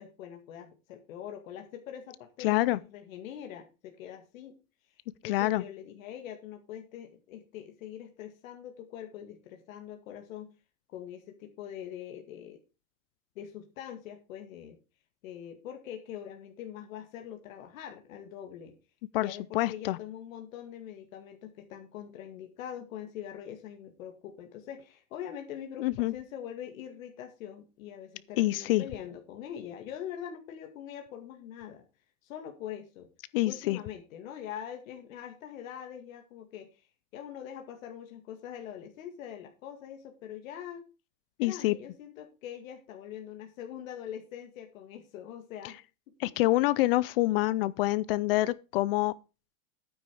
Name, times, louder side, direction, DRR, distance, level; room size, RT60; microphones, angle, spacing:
voice 1, 0.0-4.6 4.9-10.5 10.9-12.6 13.4-14.8 15.2-18.8 19.1-31.8 32.2-33.1 33.4-40.9 41.4-45.8 46.3-46.4, left 9 dB, 75° left, 2.1 m, -43 dB
voice 2, 2.4-2.8 5.2-5.6 19.1-20.0 25.8-26.1 28.4-28.8 33.3-33.8 41.4-41.8 46.2-49.1, left 18 dB, 45° left, 0.4 m, -26 dB
9.5 x 9.1 x 4.6 m
supercardioid pair, 165°, 41 cm